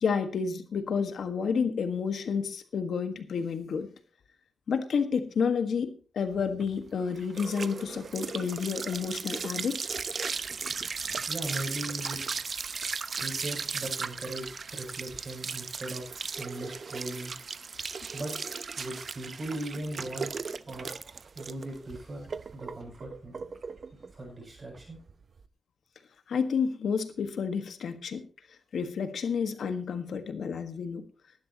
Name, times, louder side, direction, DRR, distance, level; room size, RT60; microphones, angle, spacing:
voice 1, 0.0-3.9 4.7-9.8 26.3-28.2 28.7-31.1, left 6 dB, 90° left, 9 dB, 1.5 m, -30 dB
sound 1, 6.3-25.4, right 5 dB, 55° right, 0.8 m, -37 dB
voice 2, 11.3-12.4 13.1-17.3 18.1-18.3 18.8-20.3 20.7-20.9 21.4-22.3 22.5-23.3 24.1-25.0, right 1 dB, 35° right, 0 dB, 7.1 m, -39 dB
19.5 x 11.5 x 2.9 m, 0.39 s
wide cardioid pair, 110°, 0 cm